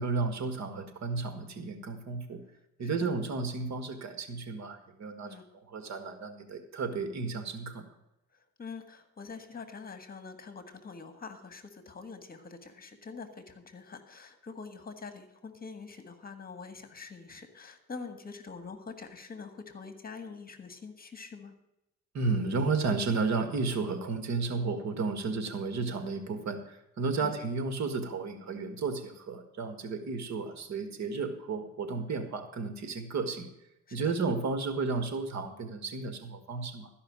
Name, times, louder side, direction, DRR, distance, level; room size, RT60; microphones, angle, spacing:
voice 1, 0.0-2.4 2.8-7.9 22.1-33.5 33.9-36.9, right 4 dB, 65° right, 8 dB, 1.7 m, -33 dB
voice 2, 8.3-21.5 27.2-27.4 33.9-34.1, left 4 dB, 30° left, 9 dB, 1.7 m, -45 dB
13.0 x 5.6 x 8.6 m, 0.85 s
cardioid pair, 90°, 30 cm